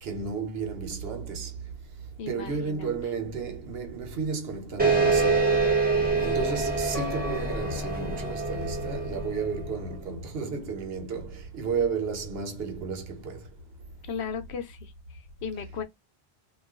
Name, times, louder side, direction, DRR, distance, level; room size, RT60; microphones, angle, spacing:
voice 1, 0.0-1.5 2.3-5.5 6.1-13.4, right 5 dB, 70° right, 1.0 m, -33 dB
voice 2, 2.2-3.1 5.9-6.4 14.1-15.8, left 6 dB, 85° left, 1.0 m, -37 dB
sound 1, 4.8-9.9, right 3 dB, 10° right, 0.8 m, -26 dB
Piano, 6.9-8.9, left 4 dB, 25° left, 0.9 m, -42 dB
2.4 x 2.3 x 3.5 m
omnidirectional pair, 1.1 m